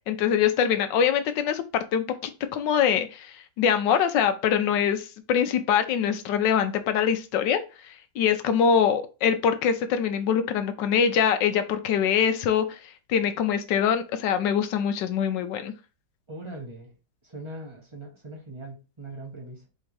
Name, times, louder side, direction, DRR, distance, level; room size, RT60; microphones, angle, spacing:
voice 1, 0.1-2.0 2.5-15.7, left 8 dB, 75° left, 9 dB, 1.2 m, -24 dB
voice 2, 16.3-16.9 17.2-19.7, right 2 dB, 20° right, -1 dB, 0.8 m, -40 dB
4.3 x 3.6 x 3.2 m, 0.32 s
omnidirectional pair, 2.0 m